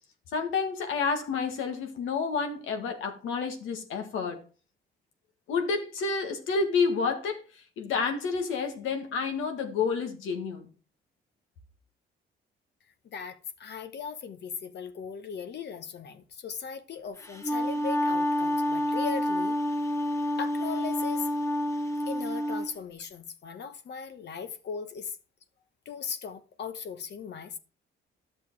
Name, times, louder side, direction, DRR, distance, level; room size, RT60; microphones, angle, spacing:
voice 1, 0.3-4.4 5.5-10.7, left 5 dB, 85° left, 1.9 m, -29 dB
voice 2, 13.0-19.5 20.4-21.3 22.1-25.2 25.8-27.6, left 6 dB, 60° left, 1.1 m, -38 dB
Wind instrument woodwind instrument, 17.2-22.7, left 1 dB, 15° left, 1.2 m, -28 dB
10.5 x 6.7 x 4.7 m
cardioid pair, 90°, 20 cm